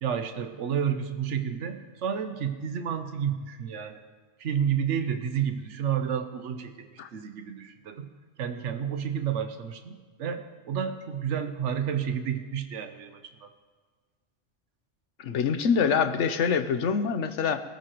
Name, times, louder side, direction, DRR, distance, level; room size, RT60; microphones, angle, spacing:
voice 1, 0.0-4.0 4.4-8.1 8.4-13.5, right 8 dB, 90° right, 8 dB, 1.1 m, -31 dB
voice 2, 15.2-17.6, left 6 dB, 85° left, 10 dB, 1.1 m, -25 dB
22.0 x 14.0 x 3.0 m, 1.4 s
omnidirectional pair, 1.2 m